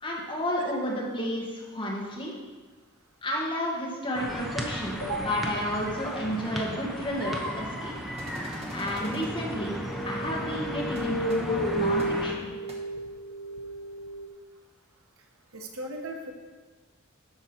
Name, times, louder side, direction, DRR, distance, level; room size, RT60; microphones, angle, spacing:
voice 1, 0.0-2.3 3.2-7.9 8.7-9.7 10.0-12.5, equal, 25° left, -3 dB, 1.7 m, -31 dB
sound 1, 4.1-12.3, equal, ahead, 0.8 m, -35 dB
voice 2, 5.0-5.4 15.5-16.3, right 2 dB, 70° right, 2 dB, 1.1 m, -35 dB
sound 2, 8.2-9.3 10.9-11.0 11.3-11.4 12.0-12.1 12.7-12.8, right 1 dB, 30° right, 1.2 m, -45 dB
sound 3, 9.0-14.3, right 1 dB, 50° left, 0.9 m, -33 dB
12.5 x 4.8 x 4.4 m, 1.3 s
head